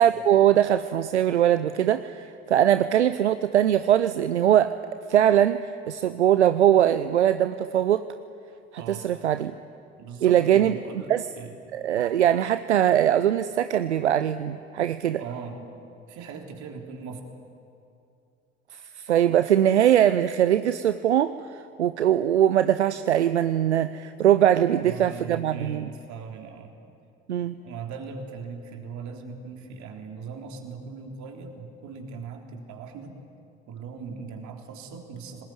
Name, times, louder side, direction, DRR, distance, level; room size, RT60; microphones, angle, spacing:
voice 1, 0.0-4.8 5.1-8.0 8.7-9.5 10.2-10.8 11.1-11.2 11.7-15.2 19.0-21.4 21.8-25.9 27.3-27.6, right 10 dB, 80° right, 12 dB, 0.6 m, -21 dB
voice 2, 10.0-11.6 14.5-17.2 24.7-26.7 27.3-33.2 33.7-35.4, right 5 dB, 55° right, 2 dB, 3.5 m, -40 dB
25.0 x 20.0 x 9.4 m, 2.5 s
figure-of-eight pair, 50°, 34 cm